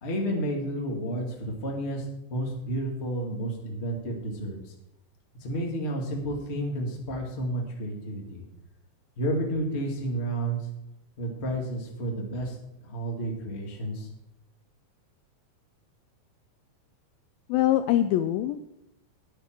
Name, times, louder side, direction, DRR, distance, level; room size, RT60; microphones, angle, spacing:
voice 1, 0.0-4.7 5.4-8.4 9.2-10.6 11.2-12.5 12.8-14.1, right 1 dB, 30° left, 0 dB, 1.3 m, -31 dB
voice 2, 17.5-18.6, left 12 dB, 85° left, 11 dB, 2.1 m, -23 dB
11.5 x 10.0 x 4.5 m, 0.86 s
omnidirectional pair, 4.5 m